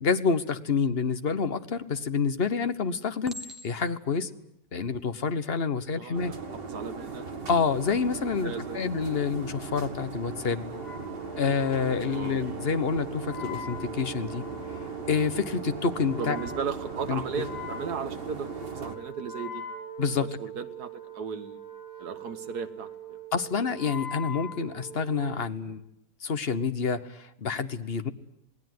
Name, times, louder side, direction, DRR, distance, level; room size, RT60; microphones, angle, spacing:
voice 1, 0.0-3.4 3.6-4.3 4.7-6.3 7.5-10.7 11.4-14.4 15.1-16.4 17.1-17.2 20.0-20.3 23.3-25.8 26.2-28.1, left 5 dB, 40° left, 11 dB, 1.2 m, -28 dB
Chink clink, 3.2-4.0 4.8-5.1, left 1 dB, ahead, 2.2 m, -43 dB
voice 2, 6.0-6.4 6.7-7.3 8.2-8.8 12.0-12.4 16.2-19.6 20.2-21.6 22.0-23.2, right 6 dB, 70° right, 9 dB, 1.9 m, -36 dB
sound 1, 6.1-19.0, right 4 dB, 35° right, 2.0 m, -38 dB
Wind instrument woodwind instrument, 10.7-25.4, right 2 dB, 75° left, 7.7 m, -42 dB
27.0 x 19.5 x 9.5 m, 0.78 s
omnidirectional pair, 1.8 m